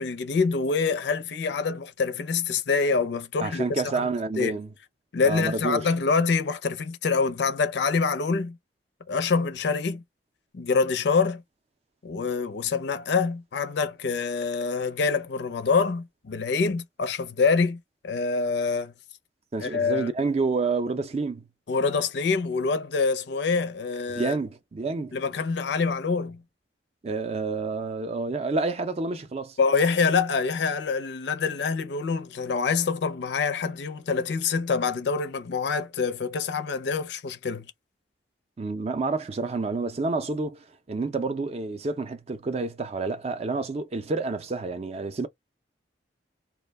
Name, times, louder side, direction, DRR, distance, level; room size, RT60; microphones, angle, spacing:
voice 1, 0.0-3.6 3.9-4.1 4.4-4.6 5.1-8.6 9.1-10.0 10.5-11.4 12.0-17.8 18.0-18.9 19.6-20.1 21.7-24.4 25.1-26.4 29.6-37.7, left 4 dB, 65° left, 0.5 m, -26 dB
voice 2, 3.4-4.7 5.2-5.9 19.5-21.5 24.2-25.2 27.0-29.6 38.6-45.3, right 3 dB, 35° right, 0.4 m, -29 dB
2.2 x 2.1 x 3.2 m
head